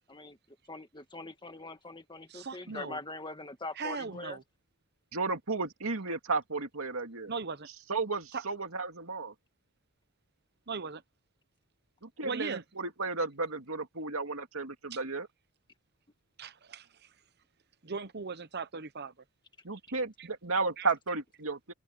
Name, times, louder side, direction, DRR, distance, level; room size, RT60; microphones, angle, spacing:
voice 1, 0.1-4.4, left 2 dB, 20° left, 1.7 m, -43 dB
voice 2, 2.3-3.0 3.8-4.4 7.3-7.7 8.3-8.4 10.7-11.0 12.2-12.6 16.4-16.9 17.8-19.1 20.2-20.3 20.8-20.9, right 4 dB, 50° right, 1.0 m, -38 dB
voice 3, 5.1-7.3 7.9-9.3 12.0-15.3 19.6-21.7, right 3 dB, 70° right, 2.6 m, -33 dB
open air
head